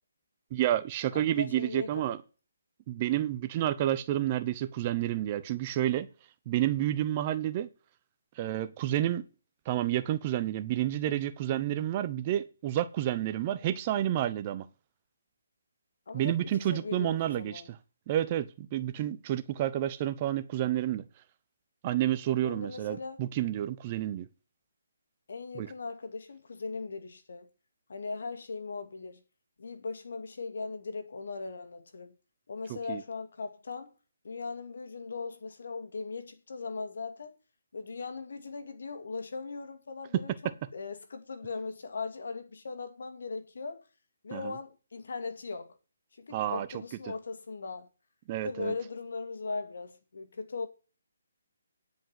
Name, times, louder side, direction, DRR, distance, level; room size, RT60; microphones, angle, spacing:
voice 1, 0.5-2.2 2.9-6.1 6.5-7.7 8.4-9.2 9.7-14.7 16.1-17.8 18.1-21.0 21.8-24.3 25.5-25.7 32.7-33.0 44.3-44.5 46.3-46.7 48.3-48.7, right 12 dB, 30° right, 0.8 m, -30 dB
voice 2, 1.1-2.2 16.1-17.7 22.4-23.2 25.3-27.5 27.9-29.2 29.6-32.1 32.5-33.9 34.2-37.4 37.7-43.8 44.2-45.8 46.1-47.9 48.4-50.7, left 4 dB, 65° left, 2.2 m, -39 dB
10.0 x 5.3 x 7.6 m
hypercardioid pair, 155°, 0 cm